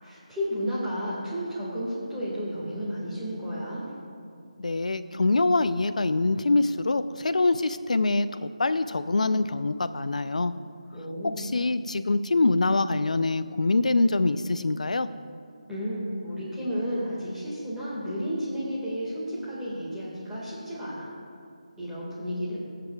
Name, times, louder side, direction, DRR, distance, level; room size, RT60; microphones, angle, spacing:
voice 1, 0.0-3.8 10.9-11.6 15.7-21.1 21.8-22.6, equal, 5° right, -10 dB, 1.8 m, -32 dB
voice 2, 4.6-10.5 11.4-15.1, left 3 dB, 75° left, 13 dB, 0.5 m, -24 dB
21.0 x 7.7 x 2.3 m, 2.4 s
figure-of-eight pair, 165°, 4 cm